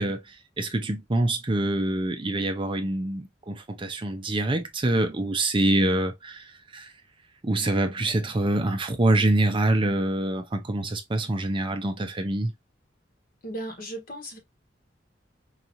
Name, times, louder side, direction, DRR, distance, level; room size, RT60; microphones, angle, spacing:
voice 1, 0.0-6.9 7.4-12.5, right 2 dB, 25° right, 0.5 m, -25 dB
voice 2, 13.4-14.4, right 1 dB, 50° left, 1.4 m, -36 dB
4.7 x 2.8 x 2.5 m
head